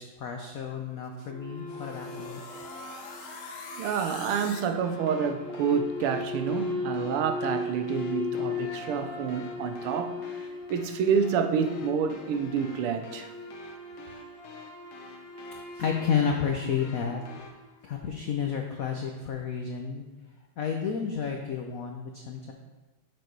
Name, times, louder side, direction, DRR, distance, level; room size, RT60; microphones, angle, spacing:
voice 1, 0.0-2.4 15.8-17.2 17.8-20.0 20.6-22.5, left 7 dB, 90° left, 0.7 m, -31 dB
sound 1, 1.2-17.8, left 3 dB, 25° left, 1.6 m, -38 dB
sound 2, 1.7-17.6, left 5 dB, 70° left, 1.6 m, -47 dB
voice 2, 3.7-10.2 10.7-13.3, right 7 dB, 85° right, 1.6 m, -28 dB
7.0 x 6.4 x 4.6 m
omnidirectional pair, 2.4 m